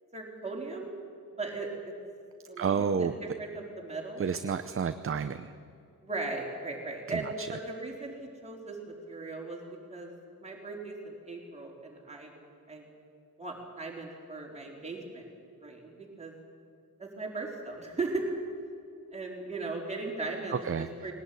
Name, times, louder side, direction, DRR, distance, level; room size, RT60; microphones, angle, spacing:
voice 1, 0.1-0.9 1.4-1.9 2.5-4.2 6.0-9.6 9.9-12.3 12.7-12.8 13.4-15.3 15.6-16.3 17.0-18.3 19.1-21.1, right 3 dB, 20° right, -1 dB, 4.3 m, -38 dB
voice 2, 2.6-3.1 4.2-5.5 7.1-7.5 20.5-21.1, right 6 dB, 35° right, 10 dB, 0.6 m, -31 dB
21.0 x 18.0 x 9.4 m, 2.4 s
wide cardioid pair, 175°, 37 cm